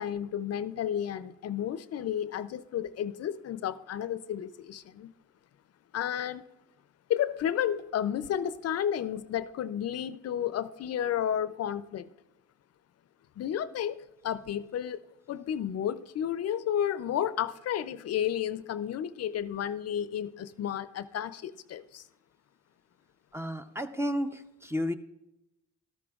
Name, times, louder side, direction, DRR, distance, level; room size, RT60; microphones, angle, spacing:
voice 1, 0.0-5.1 5.9-6.4 7.1-12.1 13.4-22.0, left 10 dB, 55° left, 14 dB, 0.5 m, -32 dB
voice 2, 23.3-24.9, equal, 10° right, 9 dB, 0.6 m, -32 dB
13.0 x 12.0 x 2.4 m, 0.91 s
cardioid pair, 90°, 30 cm